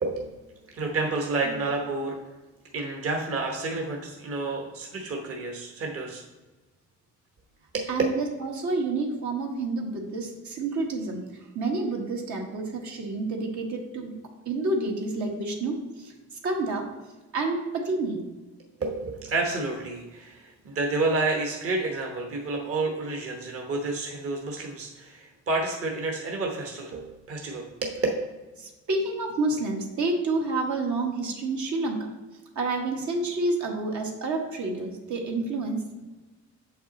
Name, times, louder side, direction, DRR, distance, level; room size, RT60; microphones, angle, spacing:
voice 1, 0.0-2.2 2.7-6.2 7.7-7.9 18.8-28.1, right 3 dB, 50° right, 1 dB, 1.2 m, -30 dB
voice 2, 7.9-11.3 11.5-14.1 14.4-16.9 17.3-18.2 28.6-32.1 32.5-36.0, right 3 dB, 70° right, 1 dB, 1.5 m, -29 dB
6.6 x 5.9 x 4.1 m, 1.2 s
cardioid pair, 90°, 30 cm